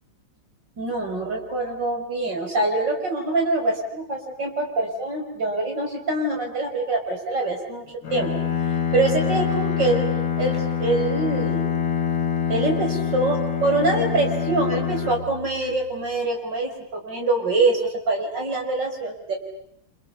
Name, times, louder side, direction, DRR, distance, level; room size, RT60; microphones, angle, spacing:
voice 1, 0.8-7.8 8.1-8.3 8.9-10.1 10.4-11.7 12.5-19.4, right 2 dB, 55° right, 2 dB, 6.3 m, -24 dB
Bowed string instrument, 8.0-16.0, left 8 dB, 45° left, 2.1 m, -25 dB
29.5 x 27.0 x 7.1 m, 0.72 s
omnidirectional pair, 2.3 m